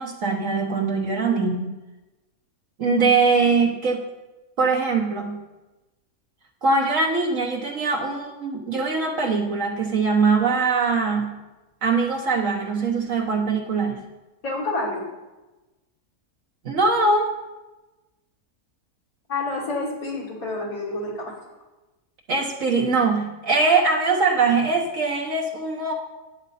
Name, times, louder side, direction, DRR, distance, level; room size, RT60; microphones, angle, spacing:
voice 1, 0.0-1.7 2.8-4.0 4.6-5.4 6.6-11.3 11.8-14.0 16.6-17.3 22.3-25.9, right 4 dB, 65° right, 0 dB, 1.3 m, -22 dB
voice 2, 14.4-15.0 19.3-21.4, left 2 dB, 75° left, -4 dB, 3.4 m, -28 dB
11.5 x 9.5 x 4.2 m, 1.1 s
omnidirectional pair, 1.5 m